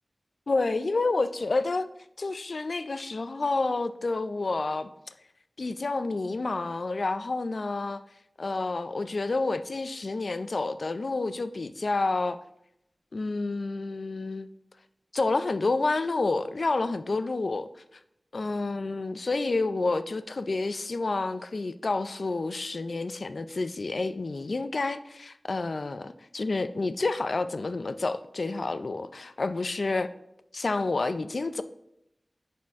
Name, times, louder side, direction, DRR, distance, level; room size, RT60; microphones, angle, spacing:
voice 1, 0.5-1.9 2.2-4.9 5.6-8.0 8.4-12.4 13.1-14.5 15.1-17.7 18.3-30.1 30.5-31.6, left 3 dB, 70° left, 0.4 m, -29 dB
11.0 x 4.3 x 3.5 m
wide cardioid pair, 70°, 0 cm